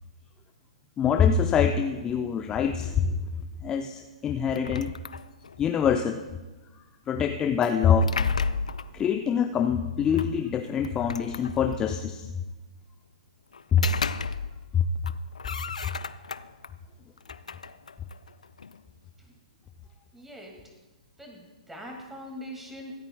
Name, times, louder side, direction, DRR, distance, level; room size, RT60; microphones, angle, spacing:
voice 1, 1.0-3.2 3.6-4.9 5.6-6.2 7.1-8.1 8.9-12.3 13.7-13.9 14.7-14.8, left 7 dB, 20° left, 6 dB, 0.5 m, -24 dB
sound 1, 4.5-5.7 7.6-9.0 10.2-10.3 10.8-11.9 13.5-14.7 15.0-16.7 17.2-18.8, left 5 dB, 75° left, 0.4 m, -33 dB
voice 2, 20.1-20.5 21.2-22.9, equal, 5° right, 1 dB, 2.2 m, -42 dB
25.0 x 9.0 x 2.3 m, 1.2 s
figure-of-eight pair, 120°, 4 cm